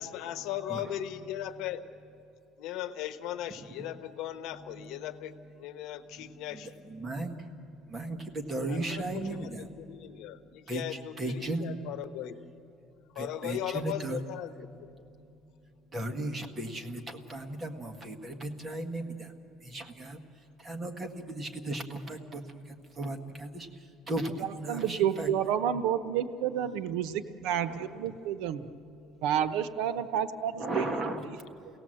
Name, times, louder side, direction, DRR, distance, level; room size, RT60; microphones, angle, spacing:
voice 1, 0.0-1.8 2.6-6.8 8.7-12.4 13.1-14.9, left 11 dB, 70° left, 10 dB, 1.1 m, -38 dB
voice 2, 3.5-3.9 4.5-5.4 6.0-10.3 10.7-11.7 13.1-14.2 15.0-19.3 19.6-25.3 27.6-28.1 28.6-29.2 30.6-31.4, right 2 dB, 20° right, 4 dB, 1.6 m, -37 dB
voice 3, 24.7-28.7 29.2-30.8, right 9 dB, 85° right, 11 dB, 0.9 m, -30 dB
29.0 x 17.5 x 7.8 m, 2.7 s
cardioid pair, 150°, 0 cm